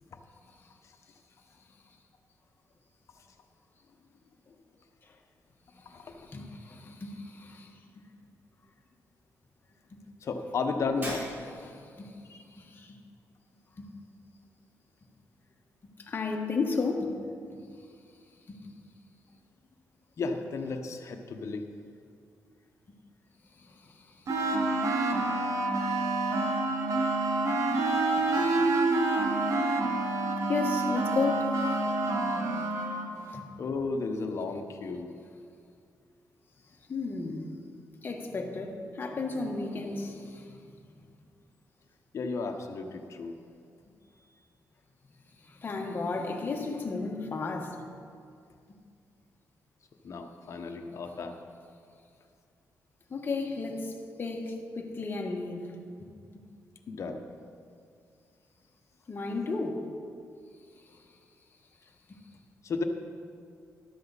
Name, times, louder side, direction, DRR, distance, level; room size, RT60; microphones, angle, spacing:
voice 1, 5.7-7.8 11.6-12.2 12.5-13.0 13.8-13.9 16.0-17.2 18.5-18.7 23.6-24.5 28.9-29.1 29.4-29.7 30.5-32.0 33.3-33.5 36.9-37.5 38.0-40.6 45.4-47.9 53.1-55.7 59.1-59.9 60.9-61.0 62.1-62.2, left 4 dB, 35° left, 2 dB, 1.5 m, -34 dB
voice 2, 10.2-11.3 12.3-12.4 20.2-21.6 33.6-35.1 42.1-43.4 50.0-51.4 56.9-57.2 62.6-62.8, left 4 dB, 55° left, 5 dB, 1.2 m, -33 dB
Shatter, 11.0-11.8, equal, 35° right, 3.6 m, -40 dB
sound 1, 24.3-33.1, right 2 dB, 60° right, 1.5 m, -27 dB
13.0 x 12.0 x 4.1 m, 2.3 s
cardioid pair, 105°, 6 cm